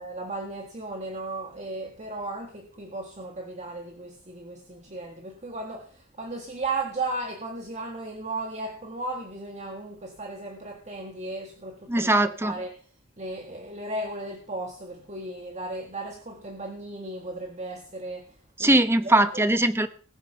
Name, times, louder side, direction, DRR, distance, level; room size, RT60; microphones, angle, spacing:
voice 1, 0.0-12.1 12.4-12.7 13.2-19.4, right 2 dB, 35° right, 1.8 m, -35 dB
voice 2, 11.9-12.6 18.6-19.9, right 1 dB, 10° right, 1.0 m, -21 dB
20.0 x 7.0 x 5.7 m
head